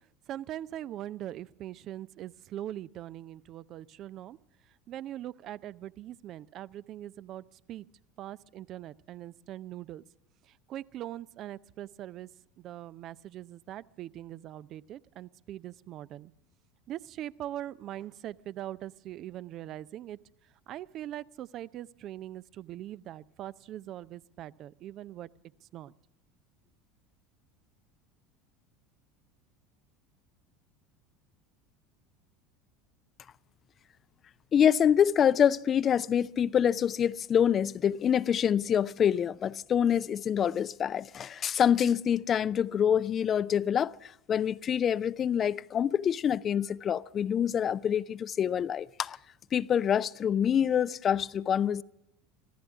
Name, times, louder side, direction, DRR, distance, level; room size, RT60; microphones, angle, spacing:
voice 1, 0.3-4.4 4.9-7.9 8.2-10.0 10.4-12.3 12.6-16.3 16.9-20.2 20.7-25.3 25.6-25.9, right 12 dB, 45° right, 0.5 m, -41 dB
voice 2, 34.5-49.2 49.5-51.8, left 8 dB, 35° left, 0.5 m, -26 dB
25.0 x 15.5 x 3.6 m
figure-of-eight pair, 70°, 0 cm